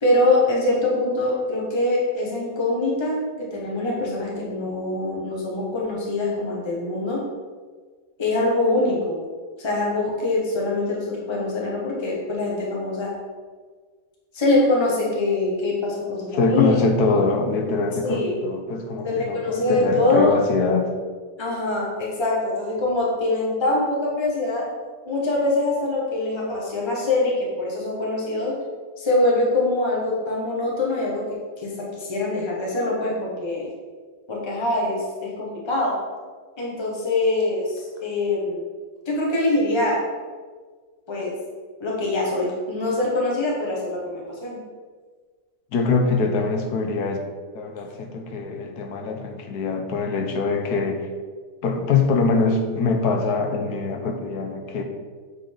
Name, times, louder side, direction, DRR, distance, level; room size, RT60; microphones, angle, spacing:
voice 1, 0.0-7.2 8.2-9.2 9.6-13.1 14.3-16.8 18.0-18.3 19.0-20.3 21.4-24.7 25.0-28.5 29.0-31.2 31.6-33.7 34.3-36.0 36.6-38.7 39.1-40.0 41.1-41.3 41.8-44.6, left 2 dB, 20° left, -4 dB, 1.1 m, -23 dB
voice 2, 16.3-20.9 45.7-47.2 47.5-51.1 51.6-54.8, left 3 dB, 75° left, 3 dB, 1.2 m, -23 dB
7.5 x 3.7 x 3.8 m, 1.5 s
omnidirectional pair, 1.7 m